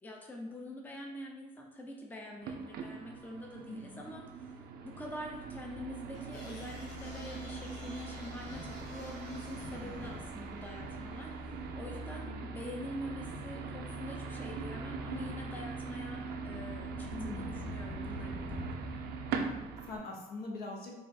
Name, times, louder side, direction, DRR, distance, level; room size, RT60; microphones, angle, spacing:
voice 1, 0.0-4.6 4.8-18.6, left 1 dB, 10° left, 0 dB, 0.5 m, -45 dB
sound 1, 2.4-20.0, right 4 dB, 70° right, 0.5 m, -41 dB
voice 2, 3.6-4.0 9.8-10.3 12.2-12.3 17.1-17.5 19.2-20.9, left 2 dB, 65° left, -1 dB, 1.0 m, -43 dB
Thunder, 5.5-19.1, left 2 dB, 40° left, 0.8 m, -49 dB
sound 2, 6.1-11.5, left 1 dB, 90° left, 0.8 m, -54 dB
4.8 x 2.4 x 2.6 m, 1.2 s
cardioid pair, 110°, 17 cm